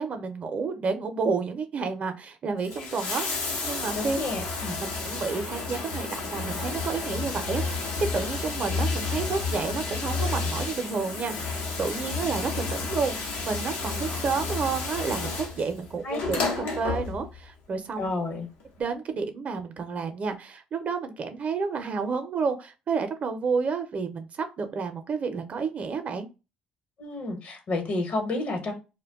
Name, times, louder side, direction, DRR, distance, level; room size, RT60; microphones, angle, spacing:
voice 1, 0.0-4.2 4.8-18.1 18.8-26.3, right 5 dB, 50° right, 7 dB, 0.6 m, -30 dB
Bathtub (filling or washing), 2.5-17.5 18.6-18.7, left 4 dB, 80° left, 0.7 m, -31 dB
voice 2, 3.9-4.8 16.0-16.2 16.6-16.8 18.0-18.5 27.0-28.7, left 2 dB, 60° left, 4 dB, 1.0 m, -30 dB
sound 1, 4.8-14.8, left 1 dB, 15° left, 0.4 m, -47 dB
2.2 x 2.2 x 3.4 m, 0.29 s
supercardioid pair, 70°, 3 cm